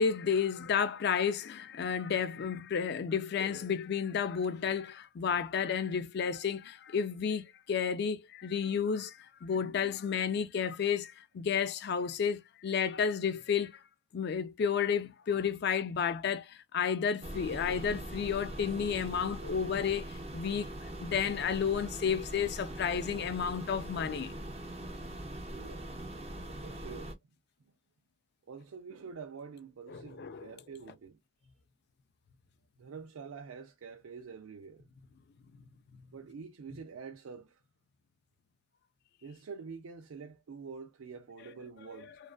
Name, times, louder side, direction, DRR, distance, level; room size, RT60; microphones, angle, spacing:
voice 1, 0.0-13.8 14.1-20.1 20.3-20.7 21.0-24.4 29.9-30.5, left 7 dB, 50° left, 0.3 m, -31 dB
sound 1, 17.2-27.1, right 1 dB, 30° right, 0.5 m, -42 dB
voice 2, 25.5-26.0 26.6-27.1 28.5-31.2 32.8-34.9 36.1-37.6 39.2-42.2, right 5 dB, 80° right, 0.4 m, -46 dB
2.4 x 2.2 x 2.3 m
head